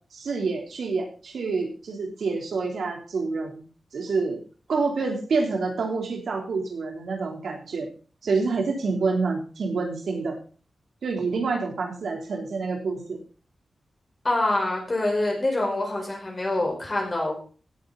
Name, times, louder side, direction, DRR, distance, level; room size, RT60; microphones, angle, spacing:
voice 1, 0.1-3.6 3.9-4.4 4.7-7.9 8.2-10.4 11.0-13.2, right 4 dB, 85° right, 2 dB, 3.6 m, -27 dB
voice 2, 14.2-17.4, left 2 dB, 30° left, -1 dB, 4.7 m, -25 dB
16.5 x 8.9 x 4.1 m, 0.38 s
wide cardioid pair, 115°, 0 cm